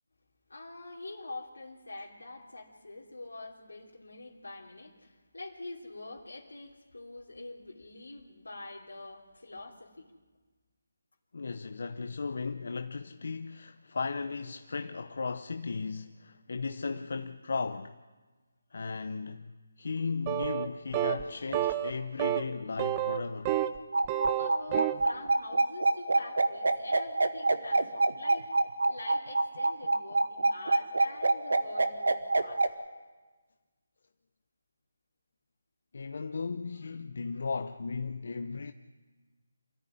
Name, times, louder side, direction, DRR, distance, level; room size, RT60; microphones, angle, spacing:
voice 1, 0.5-10.1 24.3-28.4 28.9-32.6, left 2 dB, 85° left, 3.3 m, -45 dB
voice 2, 11.3-18.0 18.7-23.6 35.9-38.7, left 4 dB, 60° left, 0.9 m, -36 dB
sound 1, 20.3-20.7 20.9-21.2 21.5-21.9 22.2-22.4 22.8-23.8 24.0-25.0, right 13 dB, 20° right, 1.0 m, -29 dB
sound 2, 23.9-32.7, right 2 dB, 75° right, 1.6 m, -26 dB
27.0 x 14.0 x 10.0 m
figure-of-eight pair, 160°, 0 cm